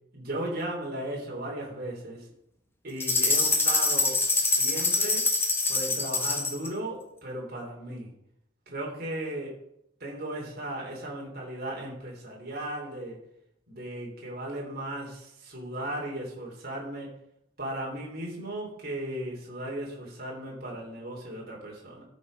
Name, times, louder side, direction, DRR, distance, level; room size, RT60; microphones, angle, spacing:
voice 1, 0.1-2.2 2.8-5.2 5.7-8.1 8.7-9.6 10.0-13.2 13.7-17.1 17.6-22.0, right 1 dB, 50° right, -2 dB, 3.4 m, -36 dB
sound 1, 3.0-6.7, left 3 dB, 10° left, 1.6 m, -25 dB
14.0 x 6.2 x 5.4 m, 0.73 s
head